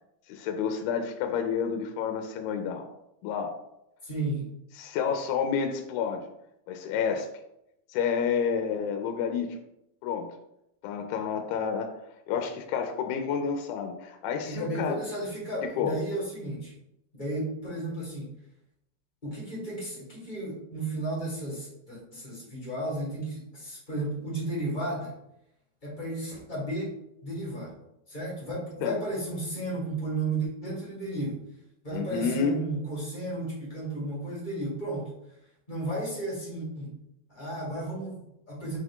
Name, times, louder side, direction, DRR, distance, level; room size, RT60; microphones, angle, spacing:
voice 1, 0.3-2.9 3.2-3.6 4.8-6.3 6.7-7.3 7.9-9.5 10.0-10.3 10.8-11.9 12.3-15.0 15.6-16.0 28.8-29.0 31.9-32.6, left 6 dB, 85° left, 6 dB, 2.6 m, -29 dB
voice 2, 4.0-4.5 14.5-16.7 17.1-18.3 19.2-25.1 25.8-26.9 27.2-27.8 28.1-31.4 31.8-35.1 35.7-37.0 37.3-38.8, right 2 dB, 25° left, -6 dB, 1.0 m, -33 dB
8.6 x 3.6 x 3.7 m, 0.81 s
omnidirectional pair, 4.5 m